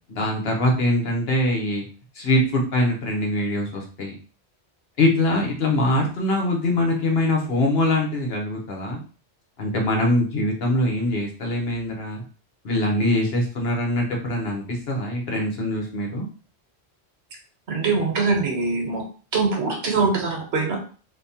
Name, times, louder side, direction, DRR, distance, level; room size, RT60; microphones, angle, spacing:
voice 1, 0.1-1.8 2.1-4.1 5.0-9.0 9.6-12.2 12.6-16.2, left 1 dB, 65° left, 0 dB, 1.2 m, -23 dB
voice 2, 17.7-19.0 19.3-20.8, right 4 dB, 70° right, 1 dB, 1.2 m, -23 dB
3.5 x 2.9 x 2.8 m, 0.38 s
omnidirectional pair, 1.1 m